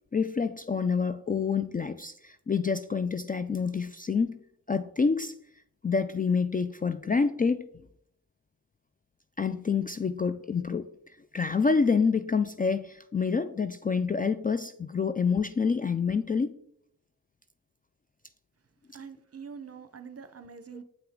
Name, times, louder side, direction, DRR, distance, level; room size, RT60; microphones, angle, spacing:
voice 1, 0.1-4.4 4.7-5.3 5.8-7.7 9.4-10.9 11.3-16.5 18.9-19.0, left 5 dB, 25° left, 11 dB, 0.4 m, -27 dB
voice 2, 18.9-20.8, right 6 dB, 40° right, 10 dB, 0.9 m, -44 dB
7.8 x 5.7 x 3.7 m, 0.71 s
cardioid pair, 50°, 38 cm